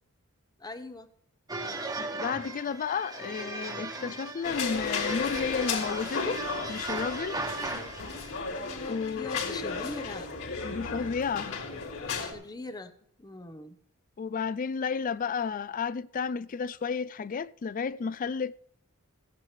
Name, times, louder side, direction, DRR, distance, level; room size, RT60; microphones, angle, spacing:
voice 1, 0.6-1.1 8.5-10.3 12.2-12.9 13.2-13.8, left 2 dB, 15° left, 0.9 m, -41 dB
sound 1, 1.5-8.4, right 2 dB, 15° right, 1.4 m, -37 dB
voice 2, 2.0-6.4 6.7-7.4 8.9-9.4 10.6-11.5 14.2-18.7, left 5 dB, 35° left, 0.3 m, -32 dB
sound 2, 4.4-12.3, left 5 dB, 70° left, 3.9 m, -34 dB
16.5 x 11.0 x 3.2 m
head